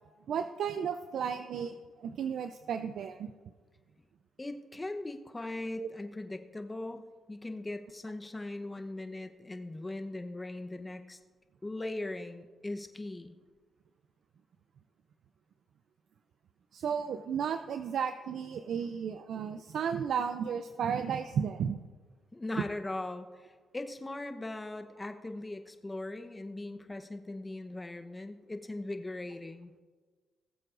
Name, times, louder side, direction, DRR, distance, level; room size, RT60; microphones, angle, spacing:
voice 1, 0.3-3.3 5.8-5.9 16.7-21.8 22.6-22.7, right 7 dB, 70° right, 9 dB, 0.4 m, -33 dB
voice 2, 4.4-11.2 11.6-13.3 22.3-29.7, left 2 dB, 20° left, 6 dB, 0.9 m, -40 dB
19.0 x 7.7 x 2.5 m, 1.4 s
cardioid pair, 75°, 0 cm